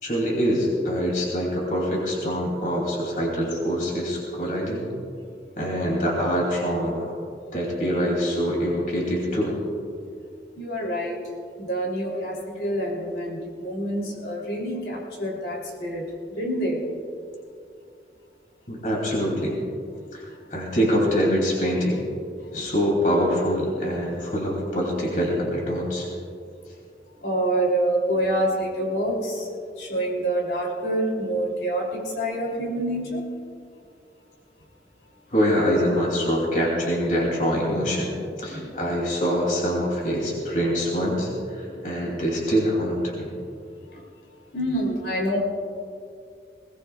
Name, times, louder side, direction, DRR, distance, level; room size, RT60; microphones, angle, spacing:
voice 1, 0.0-4.9 5.6-7.0 7.5-9.6 18.7-19.6 20.1-22.0 22.5-26.1 35.3-41.3 41.6-43.3, equal, 50° left, -2 dB, 2.8 m, -24 dB
voice 2, 10.6-11.2 11.6-16.9 22.4-22.7 27.2-29.5 29.8-33.3 38.5-39.0 41.7-42.0 43.9-44.0 44.5-45.4, right 1 dB, 75° left, -1 dB, 3.2 m, -27 dB
20.5 x 19.0 x 2.4 m, 2.4 s
head